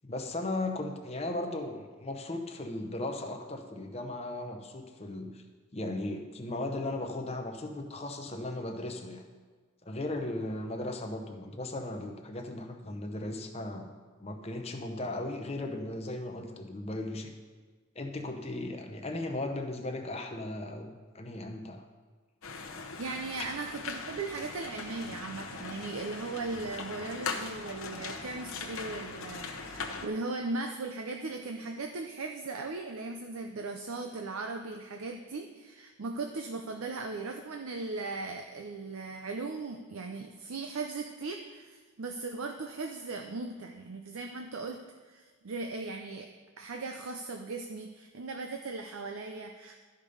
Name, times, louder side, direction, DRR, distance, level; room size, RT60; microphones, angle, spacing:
voice 1, 0.0-5.4 5.7-9.2 9.8-13.9 14.2-17.3 17.9-21.8, left 2 dB, 30° left, 4 dB, 0.8 m, -37 dB
sound 1, 22.4-30.1, left 4 dB, 70° left, 0.9 m, -40 dB
voice 2, 23.0-49.8, right 3 dB, 75° right, 4 dB, 0.6 m, -38 dB
12.5 x 5.1 x 5.5 m, 1.4 s
head